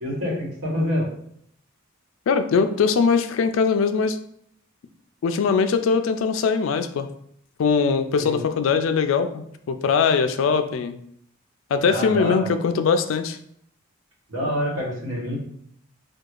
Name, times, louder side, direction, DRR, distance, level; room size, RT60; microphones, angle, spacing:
voice 1, 0.0-1.1 8.2-8.4 11.9-12.5 14.3-15.3, left 1 dB, 75° right, -4 dB, 1.3 m, -26 dB
voice 2, 2.3-4.2 5.2-7.1 7.6-11.0 11.7-13.4, left 5 dB, 65° left, 9 dB, 0.3 m, -21 dB
4.5 x 2.3 x 2.4 m, 0.69 s
head